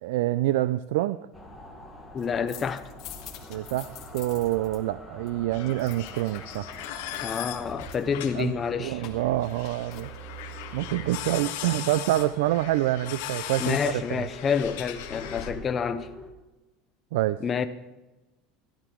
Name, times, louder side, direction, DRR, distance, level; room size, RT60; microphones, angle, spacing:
voice 1, 0.0-1.2 3.5-6.7 8.4-10.1 10.7-14.3 17.1-17.4, right 15 dB, 85° right, 0.4 m, -27 dB
sound 1, 1.3-16.3, equal, ahead, 1.6 m, -45 dB
voice 2, 2.1-2.9 7.2-9.0 13.6-16.1 17.4-17.7, left 6 dB, 20° left, 0.5 m, -28 dB
sound 2, 2.2-4.8 5.0-10.6 13.7-15.9, left 7 dB, 40° left, 2.2 m, -47 dB
sound 3, 5.5-15.5, left 12 dB, 80° left, 1.7 m, -39 dB
15.5 x 12.0 x 4.6 m
cardioid pair, 170°, 0 cm